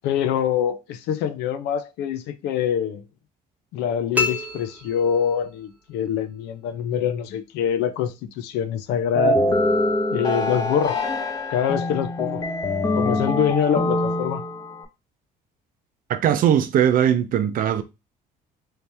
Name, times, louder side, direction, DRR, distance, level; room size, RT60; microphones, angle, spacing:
voice 1, 0.0-3.0 3.7-9.4 10.1-11.0 11.5-12.4 12.9-14.4, left 9 dB, 90° left, 0.5 m, -24 dB
sound 1, 4.1-5.7, left 4 dB, 10° right, 0.9 m, -28 dB
sound 2, 9.2-14.9, left 1 dB, 25° left, 0.7 m, -24 dB
voice 2, 16.1-17.8, right 9 dB, 55° right, 0.5 m, -19 dB
3.2 x 2.8 x 3.3 m
cardioid pair, 110°, 17 cm